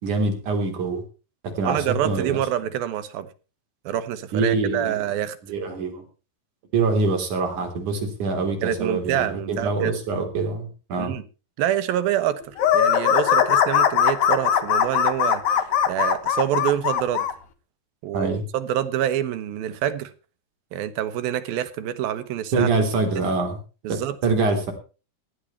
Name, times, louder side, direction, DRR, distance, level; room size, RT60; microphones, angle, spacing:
voice 1, 0.0-1.0 1.4-2.4 4.3-5.0 5.5-6.0 6.7-11.1 18.1-18.4 22.5-23.6 23.9-24.7, right 3 dB, 60° right, 4.9 m, -24 dB
voice 2, 1.7-3.3 3.9-5.4 8.6-9.9 11.0-11.2 11.6-17.3 18.0-20.1 20.7-22.7 23.8-24.2, right 11 dB, 85° right, 3.0 m, -26 dB
sound 1, 12.6-17.3, left 9 dB, 60° left, 2.5 m, -20 dB
16.0 x 11.5 x 4.4 m
omnidirectional pair, 4.1 m